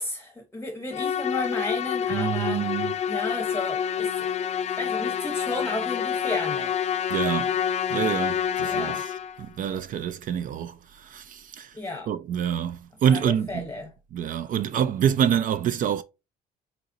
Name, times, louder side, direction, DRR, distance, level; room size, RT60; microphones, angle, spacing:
voice 1, 0.0-2.7 3.1-4.3 4.8-6.8 8.6-9.0 11.7-12.1 13.1-13.9, left 2 dB, 15° left, 0.8 m, -33 dB
Musical instrument, 0.9-9.4, left 8 dB, 40° left, 0.4 m, -27 dB
voice 2, 2.1-2.9 7.1-7.5 7.9-9.0 9.4-11.7 12.1-13.7 14.1-16.0, right 9 dB, 50° right, 0.4 m, -26 dB
4.2 x 4.0 x 2.6 m
cardioid pair, 110°, 17 cm